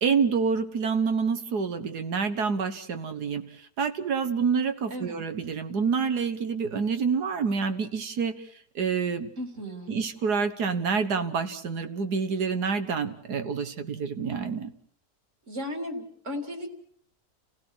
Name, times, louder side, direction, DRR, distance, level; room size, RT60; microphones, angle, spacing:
voice 1, 0.0-3.4 3.8-8.4 8.8-9.3 9.9-14.7, right 5 dB, 85° right, 8 dB, 2.1 m, -27 dB
voice 2, 9.4-9.9 15.5-16.7, left 1 dB, 50° right, 5 dB, 3.4 m, -35 dB
30.0 x 16.5 x 6.4 m, 0.66 s
omnidirectional pair, 1.7 m